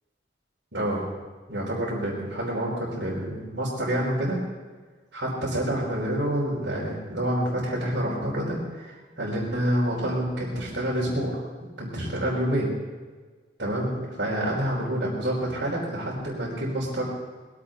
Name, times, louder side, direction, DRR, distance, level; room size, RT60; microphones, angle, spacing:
voice 1, 0.7-1.0 1.5-4.4 5.1-11.4 11.8-12.7 13.6-17.0, right 1 dB, 70° right, -8 dB, 4.8 m, -28 dB
21.0 x 17.0 x 3.9 m, 1.4 s
head